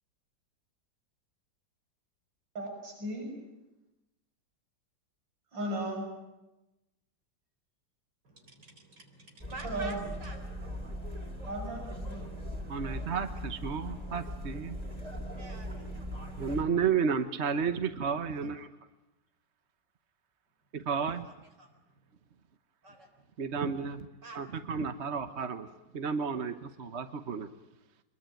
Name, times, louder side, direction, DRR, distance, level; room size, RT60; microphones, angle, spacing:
voice 1, 2.6-3.3 5.5-6.1 9.6-10.1 11.4-12.3, right 1 dB, 85° right, 1 dB, 7.0 m, -36 dB
voice 2, 8.2-10.4 15.4-15.9 18.3-18.4 21.2-21.3 21.6-22.1 22.8-23.2 24.2-24.4, right 2 dB, 65° right, 4 dB, 4.6 m, -48 dB
sound 1, 9.4-16.6, equal, 20° right, 3.7 m, -40 dB
voice 3, 12.7-14.8 16.2-18.7 20.7-21.3 23.4-24.1 24.3-25.7 25.9-27.5, right 6 dB, 45° right, 10 dB, 1.1 m, -32 dB
23.5 x 22.0 x 9.1 m, 0.98 s
omnidirectional pair, 2.0 m